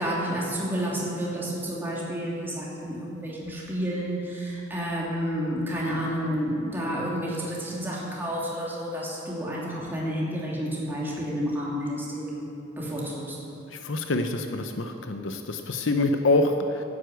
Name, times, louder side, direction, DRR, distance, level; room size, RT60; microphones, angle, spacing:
voice 1, 0.0-13.4, equal, 10° right, -5 dB, 2.8 m, -30 dB
voice 2, 13.7-16.8, left 2 dB, 90° left, 6 dB, 0.8 m, -26 dB
11.0 x 9.6 x 8.0 m, 2.7 s
head